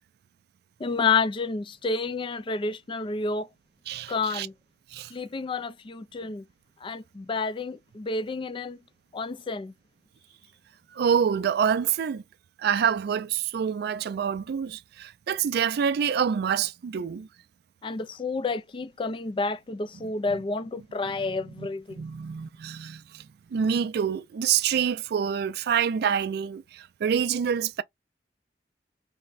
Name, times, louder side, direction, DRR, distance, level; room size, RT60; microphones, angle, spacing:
voice 1, 0.8-3.5 4.1-4.5 5.1-6.4 6.8-8.8 9.1-9.7 17.8-22.0, left 4 dB, 30° left, 0.4 m, -30 dB
voice 2, 3.9-4.5 4.9-5.1 10.9-12.2 12.6-17.3 20.3-20.4 21.2-21.7 22.0-23.3 23.5-27.8, right 7 dB, 60° right, 0.3 m, -27 dB
3.3 x 2.1 x 3.9 m
head